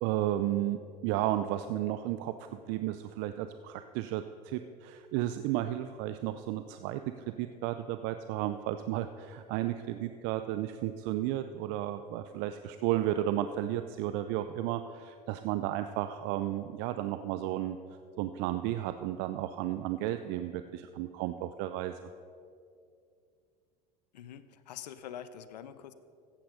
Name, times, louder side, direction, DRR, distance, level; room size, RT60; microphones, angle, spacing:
voice 1, 0.0-2.3 2.7-17.8 18.2-21.9, right 13 dB, 60° right, 10 dB, 0.5 m, -33 dB
voice 2, 24.1-25.9, left 9 dB, 85° left, 13 dB, 0.7 m, -45 dB
14.5 x 8.8 x 4.9 m, 2.4 s
hypercardioid pair, 85°, 21 cm